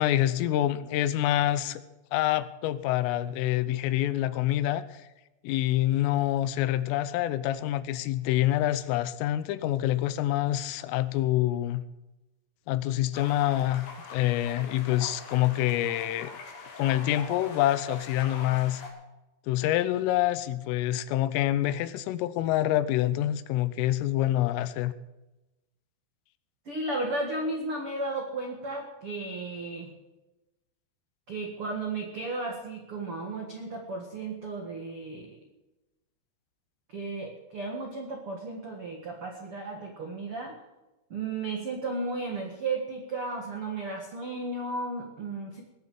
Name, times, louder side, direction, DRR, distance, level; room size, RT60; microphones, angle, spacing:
voice 1, 0.0-1.8 2.1-5.0 5.4-11.8 12.7-13.9 14.1-16.3 16.8-18.8 19.5-24.9, left 13 dB, 85° left, 14 dB, 3.4 m, -26 dB
sound 1, 13.1-18.9, left 4 dB, 70° left, 5.1 m, -43 dB
voice 2, 26.6-29.9 31.3-35.4 36.9-40.5 41.1-45.6, right 2 dB, 75° right, 1 dB, 1.2 m, -34 dB
20.0 x 7.5 x 7.5 m, 1.0 s
omnidirectional pair, 5.7 m